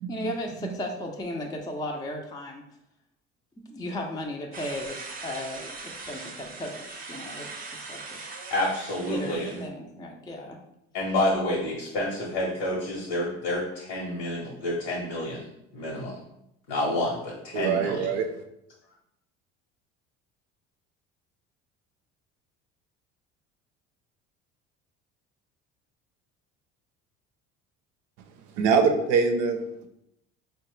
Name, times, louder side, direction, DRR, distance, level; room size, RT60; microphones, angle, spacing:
voice 1, 0.1-2.6 3.7-8.3 9.1-10.6, left 1 dB, 15° left, 1 dB, 0.5 m, -36 dB
sound 1, 4.5-9.7, right 3 dB, 30° right, 0.6 m, -41 dB
voice 2, 8.5-9.5 10.9-16.2 16.7-18.1, left 1 dB, 75° left, -5 dB, 1.0 m, -29 dB
voice 3, 17.5-18.3 28.6-29.6, right 5 dB, 75° right, 6 dB, 0.6 m, -23 dB
4.0 x 2.2 x 3.0 m, 0.80 s
supercardioid pair, 75°, 31 cm